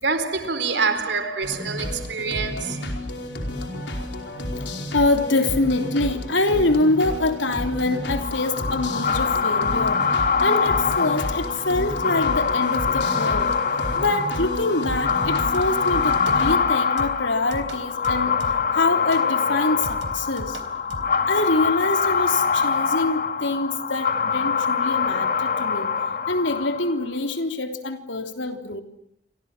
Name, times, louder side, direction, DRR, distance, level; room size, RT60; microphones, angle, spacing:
voice 1, 0.0-2.8, right 4 dB, 70° right, 4.2 m, -26 dB
sound 1, 1.4-16.5, left 1 dB, 70° left, 4.9 m, -31 dB
voice 2, 4.9-13.5 14.0-18.3 18.7-20.6 21.3-25.9 26.3-28.8, left 2 dB, 90° left, 3.4 m, -25 dB
sound 2, 8.2-27.1, left 6 dB, 50° left, 2.0 m, -24 dB
sound 3, 15.2-15.9 16.3-16.7 17.0-18.8 19.1-19.3 19.8-21.2, right 1 dB, 85° right, 3.6 m, -38 dB
29.0 x 25.5 x 7.4 m
head